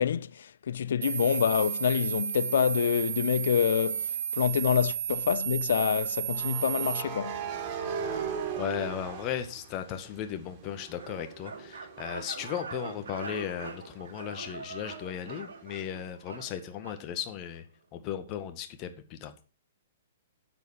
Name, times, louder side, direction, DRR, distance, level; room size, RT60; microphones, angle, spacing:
voice 1, 0.0-7.4, left 8 dB, 65° left, 0.6 m, -27 dB
sound 1, 1.0-7.0, right 9 dB, 60° right, 1.0 m, -32 dB
sound 2, 3.0-3.2 6.3-10.2 10.6-14.1, right 6 dB, 40° right, 3.6 m, -38 dB
voice 2, 8.6-17.6 17.9-19.3, left 9 dB, 35° left, 1.8 m, -36 dB
sound 3, 11.0-17.0, right 4 dB, 75° right, 2.5 m, -43 dB
9.1 x 8.1 x 6.4 m
figure-of-eight pair, 120°, 0 cm